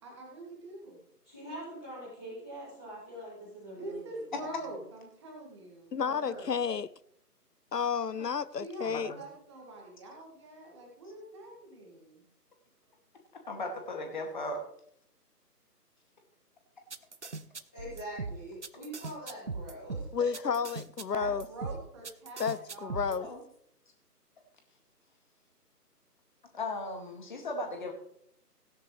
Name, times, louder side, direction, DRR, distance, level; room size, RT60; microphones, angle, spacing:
voice 1, 0.0-1.0 3.7-6.5 8.6-12.2 21.1-23.4, right 2 dB, 15° right, 2.2 m, -45 dB
voice 2, 1.2-4.7 17.7-20.3, right 1 dB, 5° left, 0.9 m, -44 dB
voice 3, 5.9-6.9 7.7-9.1 20.1-21.5 22.4-23.3, left 6 dB, 80° left, 0.7 m, -31 dB
voice 4, 8.8-9.3 13.5-14.6 23.2-23.4 26.5-27.9, left 2 dB, 30° left, 2.3 m, -37 dB
sound 1, 16.9-23.2, right 4 dB, 45° right, 0.7 m, -39 dB
17.0 x 9.9 x 3.2 m
figure-of-eight pair, 150°, 48 cm